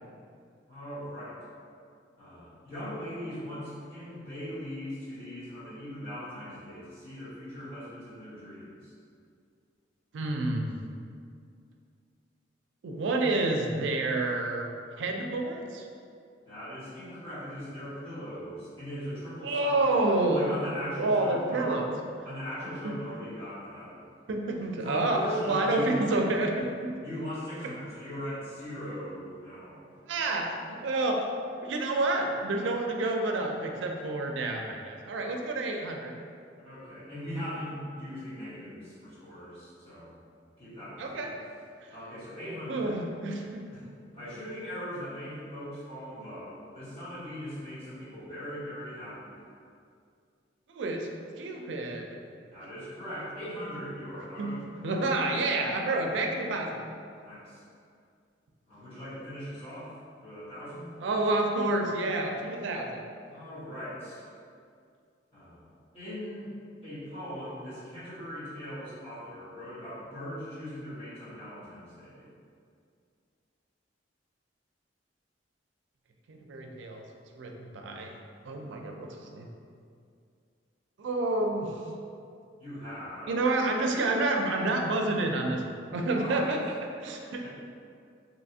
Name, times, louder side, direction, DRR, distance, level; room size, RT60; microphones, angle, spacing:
voice 1, 0.7-1.4 2.2-8.9 16.4-21.9 22.2-24.0 24.8-26.0 27.0-29.9 36.6-40.2 40.6-41.3 41.9-43.0 43.7-43.8 44.1-49.4 52.5-55.0 55.8-56.0 57.2-57.6 58.7-59.9 60.2-61.0 63.3-64.2 65.3-65.7 65.9-66.5 66.8-72.3 82.6-83.3 86.2-86.6 87.4-87.5, equal, 30° left, -14 dB, 1.4 m, -40 dB
voice 2, 10.1-10.7 12.8-14.7 15.0-15.9 19.4-20.5 21.0-21.9 24.3-25.2 25.5-26.9 30.1-31.3 31.6-36.1 41.0-41.3 42.7-43.6 50.7-51.1 51.4-52.1 54.4-54.5 54.8-56.8 61.0-63.0 76.3-77.0 77.4-78.1 78.5-79.5 81.0-81.8 83.3-86.6 87.0-87.4, right 2 dB, 80° right, 2 dB, 0.4 m, -29 dB
3.2 x 2.7 x 2.7 m, 2.3 s
head